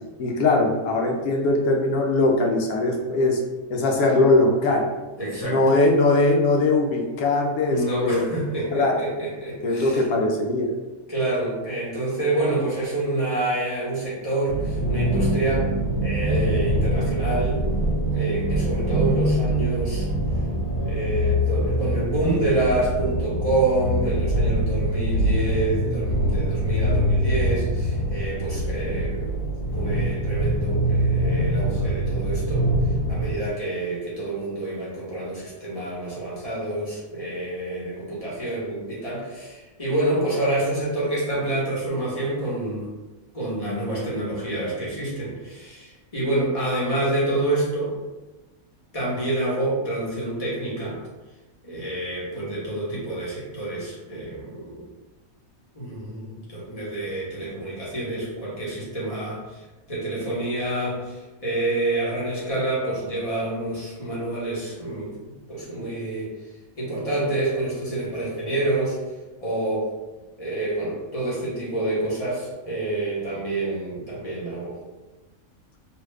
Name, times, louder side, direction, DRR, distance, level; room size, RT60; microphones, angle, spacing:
voice 1, 0.2-3.4 3.7-4.9 5.4-8.2 8.7-9.0 9.6-10.7, left 2 dB, 90° left, 1 dB, 1.1 m, -21 dB
voice 2, 5.2-5.7 7.7-10.0 11.1-15.7 16.0-17.7 18.1-20.1 20.9-29.4 29.7-32.7 33.1-42.9 43.3-47.9 48.9-51.0 51.6-54.9 55.7-59.6 59.9-65.2 65.5-66.3 66.8-69.0 69.4-69.9 70.4-74.8, right 2 dB, 30° left, -7 dB, 0.9 m, -27 dB
sound 1, 14.5-33.3, right 1 dB, 65° left, 1.3 m, -24 dB
2.8 x 2.4 x 3.2 m, 1.1 s
omnidirectional pair, 1.5 m